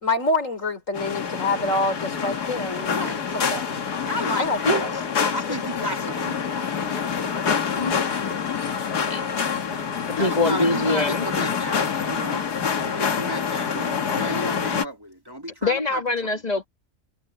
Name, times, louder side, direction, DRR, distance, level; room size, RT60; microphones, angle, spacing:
voice 1, 0.0-3.0 3.5-3.6 4.4-4.9, left 2 dB, 55° left, 4.2 m, -26 dB
sound 1, 0.9-14.8, left 6 dB, 85° left, 2.2 m, -26 dB
voice 2, 2.9-3.2 4.1-7.1 9.1-9.4 10.2-11.8 12.1-12.4 12.8-16.4, equal, 15° right, 3.1 m, -34 dB
voice 3, 4.7-5.0 7.8-8.0 9.1-9.2 10.1-11.2 15.6-16.6, left 2 dB, 25° left, 1.9 m, -24 dB
omnidirectional pair, 1.6 m